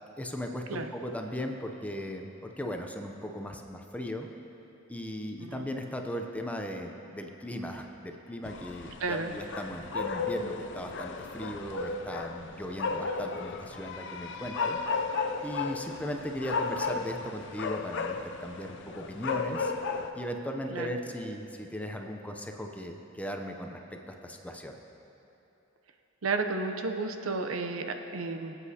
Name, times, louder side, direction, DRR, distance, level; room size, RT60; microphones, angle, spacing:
voice 1, 0.2-4.3 4.9-14.8 15.4-19.7 20.1-24.8, equal, 5° left, 3 dB, 0.6 m, -37 dB
voice 2, 5.4-5.7 9.0-9.3 20.7-20.9 26.2-28.6, right 3 dB, 85° right, 6 dB, 0.7 m, -32 dB
sound 1, 8.4-20.1, left 4 dB, 60° left, 0.5 m, -34 dB
20.5 x 8.2 x 2.8 m, 2.9 s
head